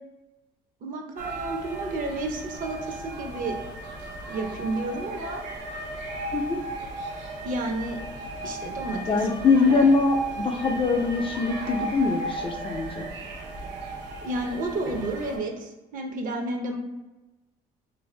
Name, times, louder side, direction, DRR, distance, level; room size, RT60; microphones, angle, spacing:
voice 1, 0.8-3.6 4.3-5.4 7.4-8.0 8.4-9.2 9.5-9.9 14.2-16.8, right 2 dB, 55° right, 3 dB, 0.6 m, -31 dB
sound 1, 1.2-15.4, right 2 dB, 90° right, 0.7 m, -36 dB
voice 2, 9.1-13.1, left 4 dB, 30° left, 3 dB, 0.4 m, -23 dB
2.6 x 2.5 x 3.2 m, 1.1 s
cardioid pair, 110°, 17 cm